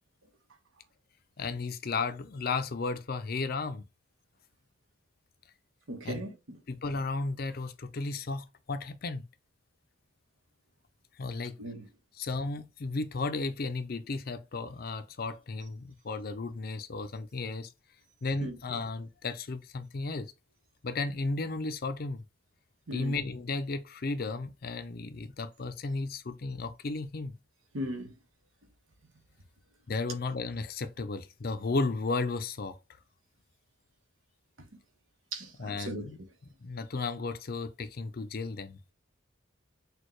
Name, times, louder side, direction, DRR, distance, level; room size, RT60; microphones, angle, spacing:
voice 1, 1.4-3.8 6.0-6.2 6.7-9.2 11.2-11.5 12.2-17.7 18.2-20.3 20.8-22.2 22.9-27.3 29.9-32.8 35.6-36.2 36.6-38.8, left 3 dB, 45° left, 0.5 m, -34 dB
voice 2, 5.9-6.6 11.6-11.9 18.4-18.6 22.9-23.2 27.7-28.2 34.6-34.7 35.3-36.1, right 1 dB, 80° right, 1.1 m, -38 dB
6.3 x 2.3 x 3.1 m
head